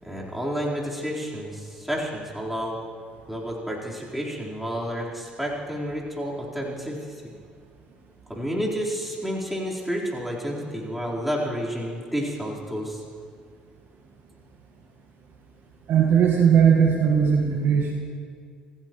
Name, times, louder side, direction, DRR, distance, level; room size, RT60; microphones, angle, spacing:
voice 1, 0.0-2.8 3.3-7.0 8.3-13.0, equal, 5° right, -4 dB, 4.2 m, -30 dB
voice 2, 15.9-17.9, right 7 dB, 50° right, 1 dB, 1.6 m, -18 dB
26.0 x 17.0 x 3.1 m, 2.1 s
figure-of-eight pair, 55°, 4 cm